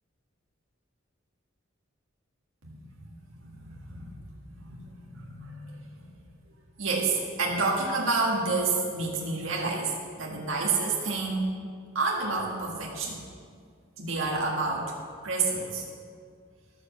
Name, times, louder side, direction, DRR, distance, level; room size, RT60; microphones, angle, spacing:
voice 1, 2.6-3.1 3.4-4.1 4.5-5.9 6.8-11.5 12.0-13.2 14.0-15.0 15.2-15.8, right 3 dB, 85° right, -2 dB, 1.8 m, -29 dB
12.5 x 6.8 x 7.0 m, 2.1 s
head